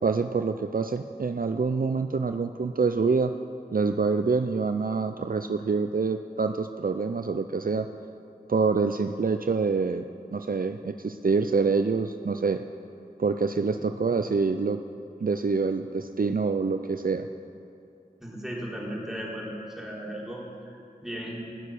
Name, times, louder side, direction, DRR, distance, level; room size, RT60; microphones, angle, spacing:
voice 1, 0.0-3.3 3.7-7.9 8.5-10.1 10.3-12.6 13.2-14.8 15.2-17.3, right 4 dB, 60° right, 7 dB, 0.5 m, -26 dB
voice 2, 18.2-21.4, equal, 5° right, -5 dB, 4.0 m, -36 dB
17.0 x 6.8 x 9.7 m, 2.6 s
wide cardioid pair, 45°, 16 cm